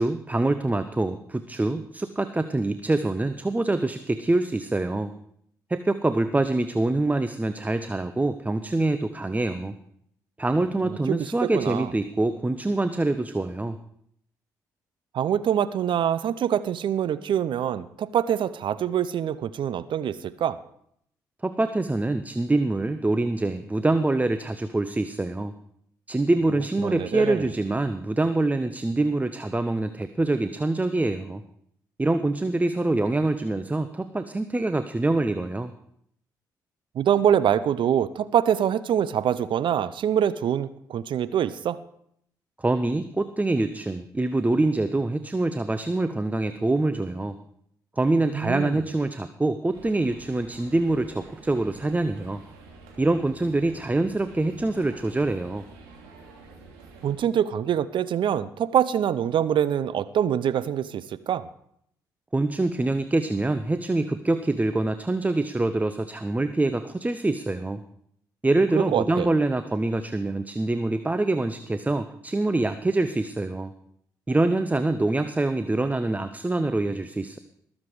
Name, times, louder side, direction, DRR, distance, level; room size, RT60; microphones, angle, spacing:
voice 1, 0.0-5.1 5.7-9.7 10.4-13.8 21.4-25.5 26.1-31.4 32.0-35.7 42.6-47.4 48.0-52.4 53.0-55.7 62.3-67.8 68.4-73.7 74.3-77.4, right 2 dB, 15° right, 11 dB, 0.8 m, -25 dB
voice 2, 10.9-11.9 15.1-20.6 26.8-27.5 36.9-41.8 48.3-48.8 57.0-61.4 68.7-69.3, right 9 dB, 60° right, 16 dB, 0.7 m, -25 dB
sound 1, 49.7-57.1, right 3 dB, 80° right, 2.9 m, -48 dB
20.0 x 7.5 x 4.9 m, 0.70 s
hypercardioid pair, 45°, 10 cm